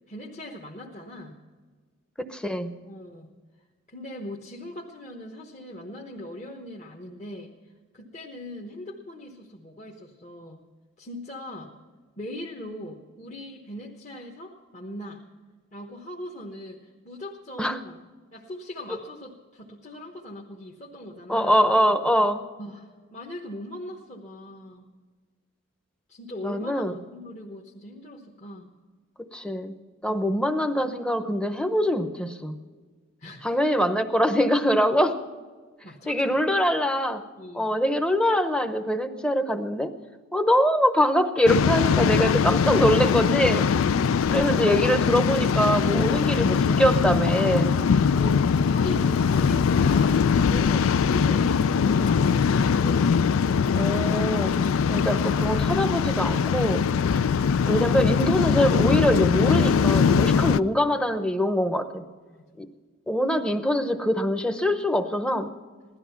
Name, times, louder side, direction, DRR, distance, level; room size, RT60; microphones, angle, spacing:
voice 1, 0.1-1.4 2.9-3.3 3.9-7.5 7.9-10.6 11.0-11.7 12.2-15.2 15.7-18.0 18.3-21.5 22.6-24.9 26.1-28.7 30.1-30.3 33.2-33.6 35.8-36.7 37.4-37.7 48.1-53.2 62.2-62.6, left 1 dB, 35° left, -2 dB, 1.1 m, -40 dB
voice 2, 2.2-2.8 17.6-17.8 21.3-22.4 26.4-26.9 29.3-29.8 30.0-32.6 33.4-35.2 36.1-37.2 37.5-40.0 40.3-43.7 44.3-47.8 53.7-54.5 54.9-56.9 57.6-62.0 62.6-62.7 63.1-65.5, equal, 5° left, 8 dB, 0.8 m, -23 dB
Waves surf, 41.5-60.6, left 6 dB, 85° left, 0.4 m, -22 dB
17.0 x 12.5 x 5.8 m, 1.5 s
head